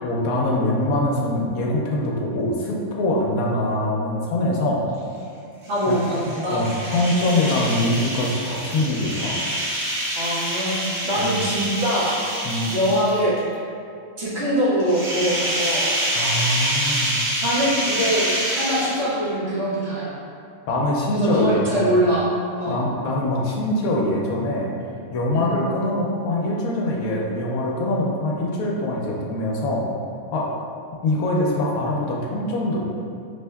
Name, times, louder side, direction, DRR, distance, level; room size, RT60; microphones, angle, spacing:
voice 1, 0.0-4.9 5.9-6.2 6.5-9.4 11.2-11.3 12.4-12.7 16.1-17.2 20.7-21.9 22.6-24.7 25.1-29.9 30.3-30.5 31.0-32.8, left 1 dB, 75° left, -3 dB, 1.0 m, -23 dB
sound 1, 5.6-13.4 14.8-19.3, right 1 dB, 70° right, 1.5 m, -26 dB
voice 2, 5.7-6.6 10.1-10.8 11.0-12.2 12.7-13.4 14.2-15.9 17.4-20.2 21.1-22.3 22.6-22.8 25.3-25.6, equal, 50° right, -9 dB, 1.0 m, -23 dB
4.3 x 3.0 x 2.2 m, 2.6 s
omnidirectional pair, 1.6 m